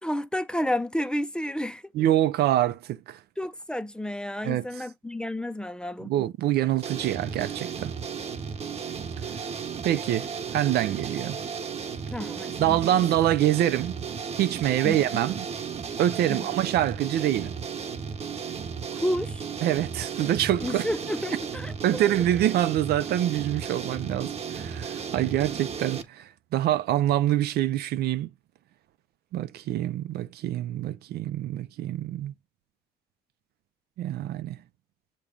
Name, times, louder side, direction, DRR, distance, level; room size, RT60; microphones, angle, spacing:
voice 1, 0.0-1.9 3.4-6.1 12.1-12.9 14.8-15.0 16.3-16.5 18.9-19.4 20.6-22.0, left 1 dB, 5° left, 0.6 m, -31 dB
voice 2, 1.9-3.2 4.4-4.6 6.0-7.9 9.8-11.4 12.6-13.9 14.4-15.5 16.0-17.5 19.6-20.9 21.8-28.3 29.3-32.3 34.0-34.6, right 12 dB, 70° right, 0.7 m, -25 dB
sound 1, 6.8-26.0, right 6 dB, 40° right, 1.2 m, -34 dB
7.1 x 3.1 x 5.0 m
cardioid pair, 110°, 17 cm